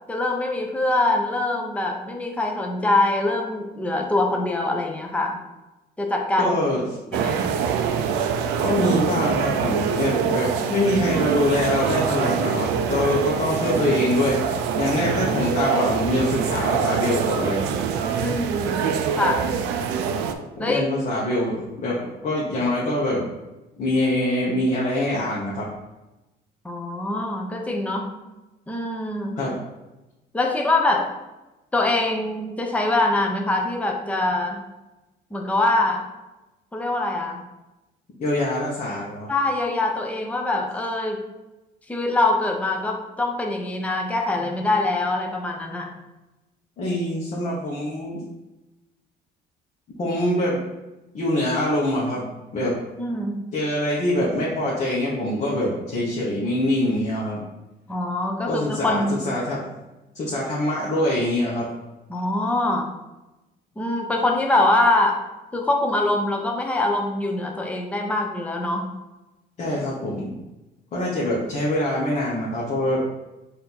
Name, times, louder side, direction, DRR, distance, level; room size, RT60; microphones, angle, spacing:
voice 1, 0.1-5.4 6.0-6.5 7.1-7.5 18.2-19.6 20.6-20.8 26.6-28.1 28.7-29.4 30.3-31.1 31.7-34.6 35.3-36.0 36.7-37.4 39.3-41.2 41.9-45.9 53.0-53.4 57.9-59.2 62.1-62.9 63.8-65.2 65.5-68.9, left 2 dB, 10° left, 1 dB, 0.6 m, -24 dB
voice 2, 6.4-6.8 8.6-17.6 20.6-22.0 22.2-23.3 23.8-25.6 29.4-29.6 38.2-39.3 46.8-48.2 50.0-50.6 51.1-52.7 53.5-57.4 58.4-59.6 60.1-61.7 69.6-70.3 70.9-73.0, left 1 dB, 45° left, -5 dB, 1.0 m, -24 dB
sound 1, 7.1-20.3, right 7 dB, 90° right, 0.4 m, -24 dB
4.2 x 2.7 x 4.1 m, 1.0 s
cardioid pair, 110°, 17 cm